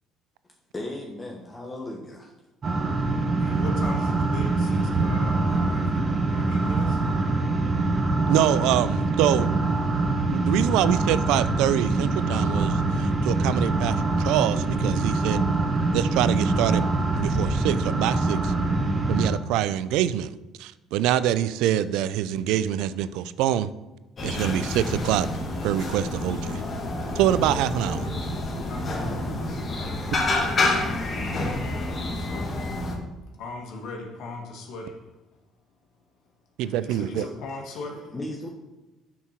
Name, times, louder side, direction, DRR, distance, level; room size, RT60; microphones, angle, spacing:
voice 1, 0.7-2.3 38.1-38.5, left 1 dB, 20° left, 1.2 m, -35 dB
sound 1, 2.6-19.3, right 3 dB, 35° right, 1.2 m, -24 dB
voice 2, 3.4-6.0 6.3-7.0 28.7-30.0 31.5-32.6 33.4-35.1 36.6-38.1, left 2 dB, 70° left, 1.7 m, -39 dB
voice 3, 8.3-9.5 10.3-15.4 15.9-16.9 17.2-18.5 19.1-23.7 24.2-25.3 25.6-26.6 27.2-28.1 36.6-37.3, right 12 dB, 80° right, 0.4 m, -25 dB
sound 2, 24.2-33.0, left 2 dB, 35° left, 2.0 m, -28 dB
8.4 x 4.5 x 5.8 m
supercardioid pair, 90°, 0 cm